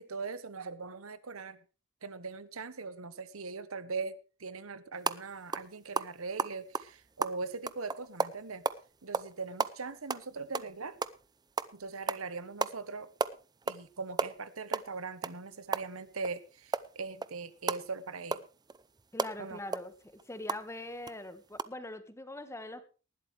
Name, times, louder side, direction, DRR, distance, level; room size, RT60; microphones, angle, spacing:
voice 1, 0.0-1.6 2.0-8.6 9.0-11.0 11.7-13.1 13.7-18.4 19.4-19.6, right 4 dB, 80° right, 15 dB, 1.1 m, -40 dB
sound 1, 5.0-5.2 5.5-5.7 6.0-8.8 9.1-9.3 9.6-11.2 11.6-11.8 12.1-12.2 12.6-12.8 13.0-13.9 14.1-16.4 16.7-20.7 21.1-21.2 21.5-21.6, right 4 dB, 20° right, 0.6 m, -34 dB
voice 2, 19.1-19.9 20.3-22.8, left 1 dB, 15° left, 10 dB, 1.6 m, -42 dB
19.0 x 12.0 x 3.3 m, 0.34 s
head